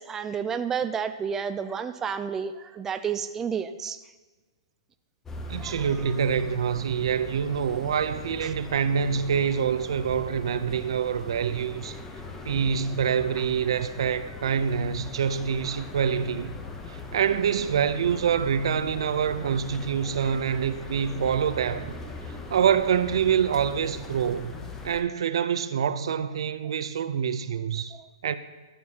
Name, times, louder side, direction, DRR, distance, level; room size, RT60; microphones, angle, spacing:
voice 1, 0.0-4.0 5.6-5.9 8.4-8.5 27.9-28.1, right 7 dB, 15° right, 0.3 m, -31 dB
sound 1, 5.2-25.0, left 3 dB, 15° left, 0.8 m, -40 dB
voice 2, 5.5-12.0 12.4-16.5 16.9-21.9 22.3-24.5 24.8-28.0 28.2-28.3, right 7 dB, 70° right, 0.6 m, -26 dB
14.0 x 9.2 x 2.9 m
hypercardioid pair, 135°, 3 cm